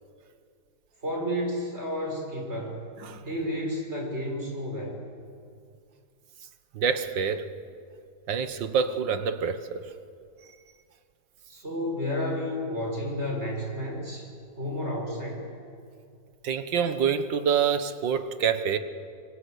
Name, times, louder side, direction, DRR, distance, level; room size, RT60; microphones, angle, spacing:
voice 1, 1.0-2.8 3.2-5.0 11.5-14.3 14.5-15.5, equal, 35° right, 0 dB, 6.6 m, -31 dB
voice 2, 6.8-7.5 8.3-9.8 16.4-18.8, right 7 dB, 85° right, 10 dB, 1.9 m, -26 dB
25.5 x 24.5 x 8.3 m, 2.3 s
omnidirectional pair, 1.9 m